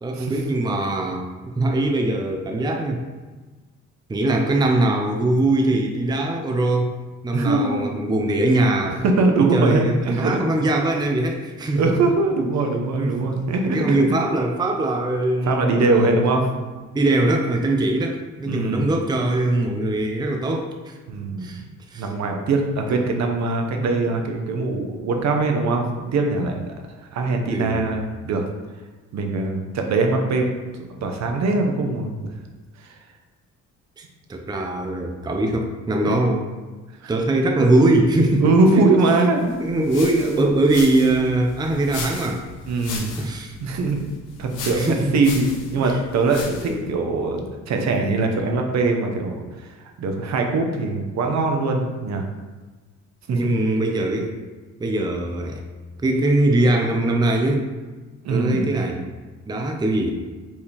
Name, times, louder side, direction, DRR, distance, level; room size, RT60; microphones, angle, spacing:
voice 1, 0.0-3.0 4.1-6.9 7.2-9.0 9.4-11.8 12.9-13.2 13.7-16.1 16.9-20.9 21.4-21.6 21.9-22.1 27.5-27.8 34.0-34.1 34.3-36.5 37.1-38.9 39.4-42.4 43.2-43.6 44.7-45.4 45.8-46.0 46.6-46.9 53.3-54.3 54.8-55.6 56.0-57.7 58.3-59.0 59.5-60.1, right 2 dB, 15° right, 2 dB, 0.5 m, -21 dB
voice 2, 7.3-7.9 9.0-10.4 11.7-14.2 15.5-16.5 18.5-18.9 21.1-21.6 22.0-26.7 27.1-28.4 29.1-30.5 31.0-32.3 32.8-32.9 36.0-36.1 37.0-37.1 38.4-39.4 42.7-43.1 43.6-44.0 44.4-49.7 50.0-52.2 53.3-53.5 58.2-58.6, right 3 dB, 65° right, 3 dB, 0.8 m, -22 dB
sound 1, 39.5-46.8, left 4 dB, 90° left, 0.8 m, -37 dB
4.5 x 3.4 x 3.0 m, 1.3 s
cardioid pair, 90°, 30 cm